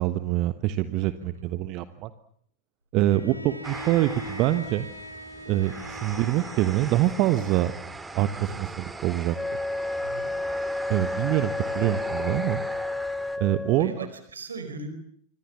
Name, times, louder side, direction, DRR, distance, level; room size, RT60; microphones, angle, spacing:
voice 1, 0.0-2.1 2.9-4.9 5.5-7.7 8.1-8.7 9.0-9.6 10.9-12.6 13.4-14.1, right 14 dB, 40° right, 12 dB, 1.2 m, -25 dB
Bowed string instrument, 3.1-8.1, equal, 90° left, 3.0 m, -41 dB
sound 1, 3.6-13.4, right 3 dB, 10° right, 2.5 m, -40 dB
Wind instrument woodwind instrument, 9.3-14.0, left 2 dB, 5° left, 1.1 m, -31 dB
voice 2, 10.0-10.3 13.7-14.9, right 3 dB, 70° right, 9 dB, 4.9 m, -40 dB
26.0 x 25.5 x 7.3 m, 0.65 s
figure-of-eight pair, 90°, 0 cm